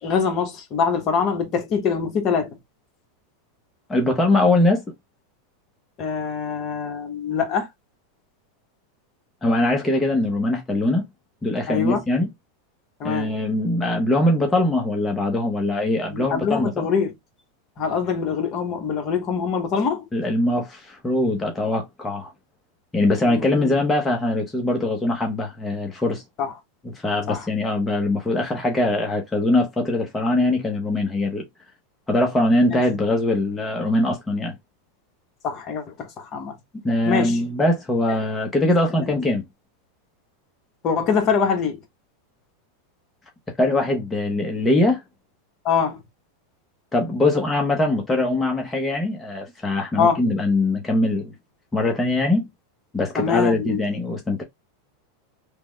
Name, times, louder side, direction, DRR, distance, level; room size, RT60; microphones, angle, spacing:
voice 1, 0.0-2.6 6.0-7.7 11.7-12.0 13.0-13.3 16.1-17.1 17.8-20.1 23.2-23.8 26.4-26.5 27.3-27.5 32.7-32.8 35.4-36.6 37.0-37.4 38.1-38.2 38.9-39.1 40.8-41.8 45.6-46.0 50.0-50.2 53.1-53.8, left 6 dB, 40° left, 1.0 m, -24 dB
voice 2, 3.9-4.8 9.4-11.1 11.4-12.3 13.0-16.9 20.1-22.3 22.9-26.2 26.9-31.4 32.1-34.5 36.8-39.4 43.6-45.0 46.9-51.3 51.7-52.5 52.9-54.4, left 2 dB, 10° left, 0.7 m, -22 dB
3.3 x 2.0 x 3.2 m
supercardioid pair, 130°, 0 cm